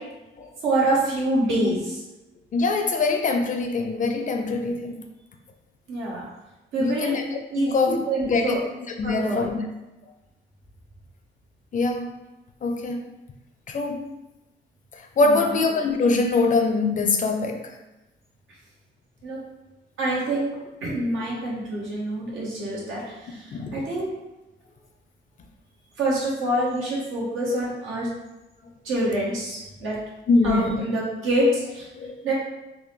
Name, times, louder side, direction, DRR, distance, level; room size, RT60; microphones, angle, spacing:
voice 1, 0.6-2.0 5.9-6.3 6.7-7.1 7.5-8.6 9.0-9.4 15.2-15.6 19.2-19.4 20.0-20.6 20.8-24.1 26.0-28.1 28.8-30.0 30.4-31.9 32.2-32.3, right 1 dB, 85° right, -5 dB, 1.1 m, -26 dB
voice 2, 2.5-5.0 6.8-8.0 8.3-8.6 9.0-9.6 11.7-12.2 12.6-13.0 13.7-14.0 15.2-17.7 23.5-23.8 30.3-30.8 32.0-32.2, left 3 dB, 40° left, 4 dB, 0.5 m, -23 dB
3.5 x 2.1 x 3.2 m, 0.98 s
cardioid pair, 90°, 20 cm